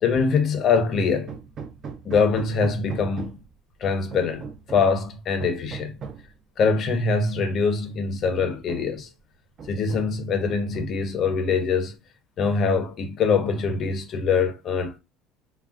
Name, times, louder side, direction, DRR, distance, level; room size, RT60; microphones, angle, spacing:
voice 1, 0.0-1.3 2.0-3.4 3.8-5.9 6.6-9.1 9.7-11.9 12.4-15.0, left 5 dB, 35° left, 0.5 m, -23 dB
Hammer, 1.3-3.6 4.1-5.0 5.4-6.3 7.3-7.4 7.9-8.0 8.4-9.0 9.6-10.2 10.5-11.1, right 6 dB, 30° right, 0.3 m, -39 dB
3.3 x 2.1 x 2.3 m
cardioid pair, 160°, 0 cm